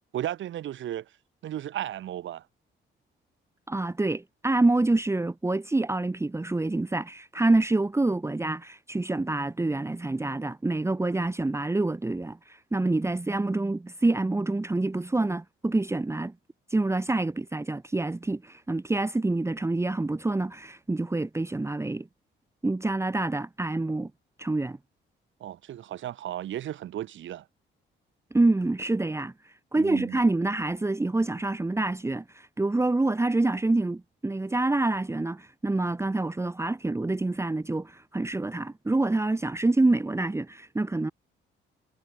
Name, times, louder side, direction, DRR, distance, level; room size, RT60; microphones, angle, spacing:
voice 1, 0.1-1.0 1.4-2.4 25.4-27.4 29.8-30.2, right 12 dB, 75° right, 3.2 m, -34 dB
voice 2, 3.7-16.3 16.7-22.1 22.6-24.1 24.4-24.8 28.3-41.1, right 2 dB, 15° right, 1.3 m, -27 dB
cardioid pair, 90°, 20 cm